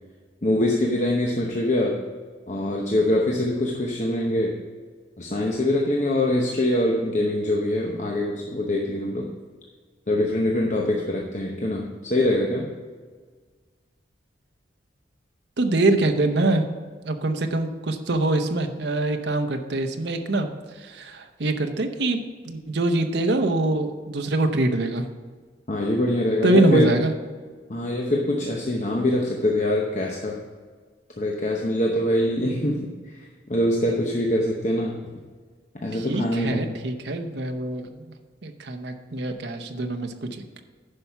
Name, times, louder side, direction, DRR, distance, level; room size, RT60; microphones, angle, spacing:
voice 1, 0.4-2.0 2.5-4.5 5.2-9.3 10.1-12.7 25.7-26.9 27.7-30.4 31.2-32.8 33.1-33.2 33.5-35.0 35.7-36.7, left 1 dB, 40° left, 0 dB, 0.8 m, -24 dB
voice 2, 15.6-16.6 17.0-20.5 20.8-22.2 22.4-25.1 26.4-27.1 35.9-38.1 38.4-40.4, right 2 dB, 65° right, 6 dB, 0.8 m, -24 dB
10.5 x 5.5 x 5.7 m, 1.5 s
head